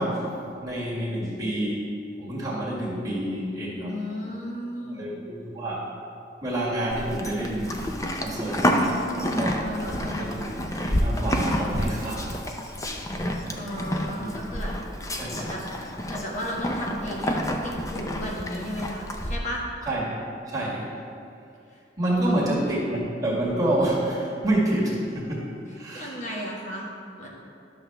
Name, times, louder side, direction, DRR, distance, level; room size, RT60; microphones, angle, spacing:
voice 1, 0.0-1.9 2.2-3.9 4.9-5.9 6.4-9.6 10.2-10.4 10.8-12.5 13.1-13.3 14.2-14.3 15.2-15.3 19.9-20.2 20.5-20.9 22.0-25.5 25.7-26.2, right 1 dB, 20° right, -6 dB, 1.9 m, -28 dB
voice 2, 3.9-5.2 9.6-10.4 13.6-14.7 15.3-15.6 16.1-19.6 22.2-22.5 25.9-26.9 27.2-27.3, left 1 dB, 45° left, -4 dB, 1.5 m, -34 dB
Livestock farm animals working animals, 6.9-19.4, equal, 20° left, 0.6 m, -29 dB
12.0 x 6.9 x 3.4 m, 2.5 s
head